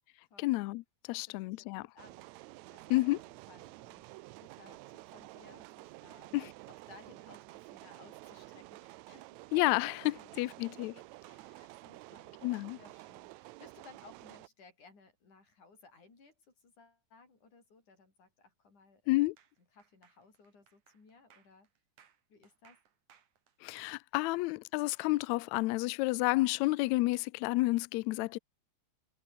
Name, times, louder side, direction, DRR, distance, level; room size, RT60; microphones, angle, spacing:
voice 1, 0.4-0.8 1.1-1.9 2.9-3.2 6.3-6.5 9.5-10.9 12.4-12.8 19.1-19.3 23.6-28.4, left 20 dB, 85° left, 1.6 m, -30 dB
voice 2, 1.1-2.3 2.7-4.1 4.4-6.3 6.7-9.2 10.1-10.4 11.3-12.4 12.8-19.3 19.7-21.7 22.3-22.8, left 4 dB, 65° left, 8.4 m, -60 dB
sound 1, 2.0-14.5, right 20 dB, 85° right, 1.6 m, -51 dB
sound 2, 19.4-25.2 25.5-27.0, right 8 dB, 65° right, 3.6 m, -66 dB
omnidirectional pair, 3.8 m